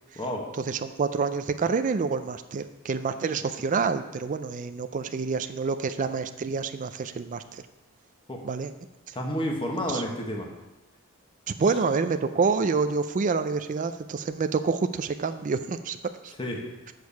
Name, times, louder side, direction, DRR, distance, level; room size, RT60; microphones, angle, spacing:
voice 1, 0.2-0.5 8.3-8.4 9.1-10.5 16.4-16.6, equal, 25° left, 1 dB, 1.2 m, -30 dB
voice 2, 0.7-7.6 8.4-8.7 9.9-10.0 11.6-16.0 16.2-16.3, right 4 dB, 35° right, 10 dB, 0.4 m, -27 dB
6.7 x 6.3 x 7.0 m, 1.0 s
head